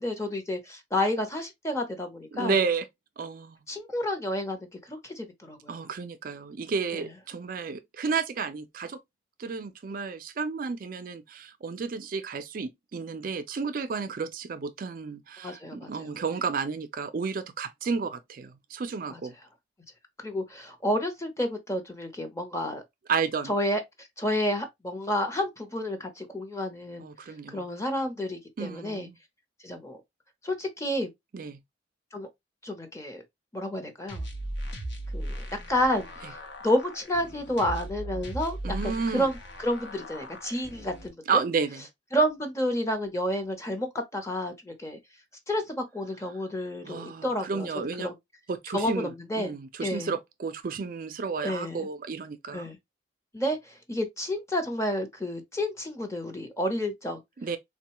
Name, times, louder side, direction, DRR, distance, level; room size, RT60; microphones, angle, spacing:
voice 1, 0.0-2.6 3.7-5.9 6.9-7.0 15.4-16.1 19.1-19.2 20.2-22.8 23.5-23.8 24.2-27.0 27.5-29.1 29.6-30.0 30.4-31.1 32.1-32.3 32.6-33.2 33.5-34.2 35.1-36.4 36.6-41.4 42.1-45.0 45.5-48.1 48.7-49.5 49.8-50.1 51.4-51.9 52.5-52.8 53.3-57.2, left 1 dB, 15° left, 0.7 m, -30 dB
voice 2, 2.3-2.9 3.2-3.6 5.7-9.0 9.4-19.3 23.1-23.5 27.0-27.7 28.6-29.2 31.3-31.6 38.6-39.3 41.3-41.9 46.8-48.1 48.5-49.1 49.3-52.7 57.4-57.6, right 5 dB, 50° right, 0.4 m, -32 dB
sound 1, 34.1-41.1, right 1 dB, 60° left, 0.8 m, -38 dB
3.7 x 2.2 x 2.9 m
head